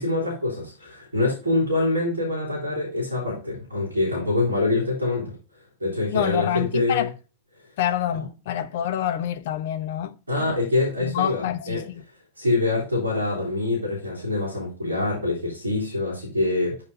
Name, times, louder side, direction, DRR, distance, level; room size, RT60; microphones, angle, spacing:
voice 1, 0.0-5.4 5.8-7.1 10.3-11.8 12.4-16.8, left 2 dB, 75° right, 3.4 m, -25 dB
voice 2, 6.1-7.1 7.8-10.6 11.0-12.0, left 11 dB, 55° left, 0.5 m, -27 dB
5.4 x 4.5 x 5.8 m
figure-of-eight pair, 90°, 0 cm